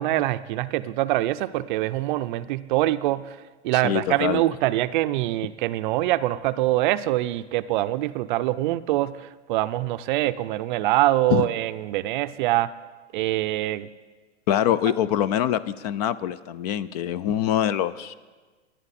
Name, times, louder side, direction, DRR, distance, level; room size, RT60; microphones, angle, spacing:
voice 1, 0.0-3.4 3.6-12.7 13.1-13.9, right 15 dB, 45° right, 13 dB, 0.5 m, -24 dB
voice 2, 3.7-4.4 11.3-11.5 14.5-18.1, left 11 dB, 35° left, 17 dB, 0.4 m, -24 dB
19.0 x 11.0 x 4.2 m, 1.4 s
hypercardioid pair, 130°, 35 cm